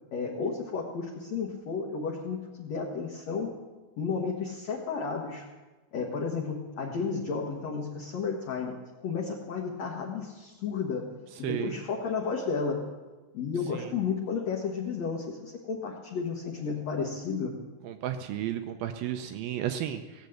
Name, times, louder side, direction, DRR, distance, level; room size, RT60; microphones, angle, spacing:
voice 1, 0.1-3.5 4.0-5.4 5.9-8.8 9.0-11.1 11.4-12.9 13.3-17.5, left 5 dB, 70° left, -1 dB, 1.6 m, -32 dB
voice 2, 11.4-11.7 13.7-13.9 17.8-20.3, right 10 dB, 85° right, 7 dB, 2.1 m, -33 dB
18.5 x 8.2 x 7.8 m, 1.3 s
omnidirectional pair, 5.1 m